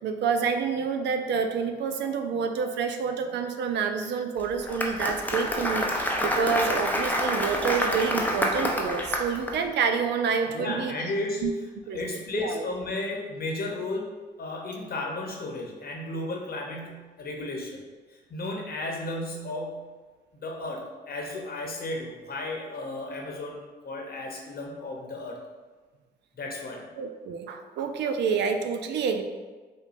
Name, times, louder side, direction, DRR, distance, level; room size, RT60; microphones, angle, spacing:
voice 1, 0.0-10.9 11.4-11.5 11.9-12.0 12.3-12.7 27.0-29.2, right 6 dB, 70° right, 7 dB, 0.4 m, -28 dB
Applause, 4.4-9.6, equal, 10° left, 0.6 m, -27 dB
voice 2, 10.5-11.4 11.9-14.1 14.4-17.8 18.1-19.9 20.3-25.4 26.4-26.8, left 2 dB, 55° left, 0 dB, 0.8 m, -34 dB
4.9 x 2.2 x 2.5 m, 1.4 s
supercardioid pair, 60°, 19 cm